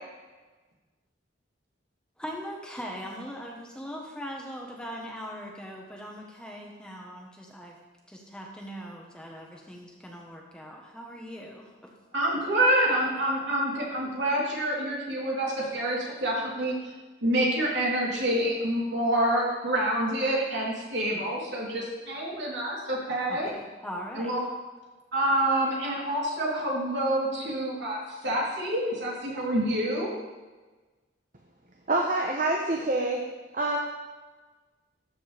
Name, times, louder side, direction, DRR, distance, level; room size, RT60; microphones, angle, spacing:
voice 1, 2.2-7.8 8.1-11.9 23.3-24.3, equal, 5° left, -1 dB, 1.2 m, -40 dB
voice 2, 12.1-16.7 17.2-23.5 24.1-24.4 25.1-30.1, right 1 dB, 70° right, -5 dB, 3.3 m, -27 dB
voice 3, 31.9-33.2 33.5-33.8, right 2 dB, 45° right, 1 dB, 0.9 m, -26 dB
13.0 x 8.2 x 3.4 m, 1.2 s
head